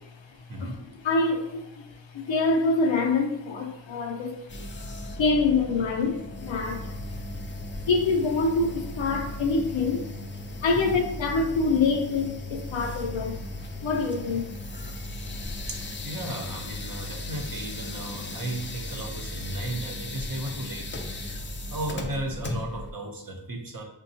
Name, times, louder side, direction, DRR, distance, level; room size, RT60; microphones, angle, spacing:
voice 1, 0.5-0.8 10.7-11.0 15.7-20.9 21.7-23.8, right 2 dB, 50° right, 0.8 m, -35 dB
voice 2, 1.0-6.9 7.9-10.1 10.6-13.4 13.8-14.5 18.2-18.3, left 3 dB, 80° left, 0.6 m, -26 dB
sound 1, 4.5-22.9, left 1 dB, 25° left, 0.4 m, -36 dB
5.1 x 2.2 x 2.7 m
cardioid pair, 60°, 45 cm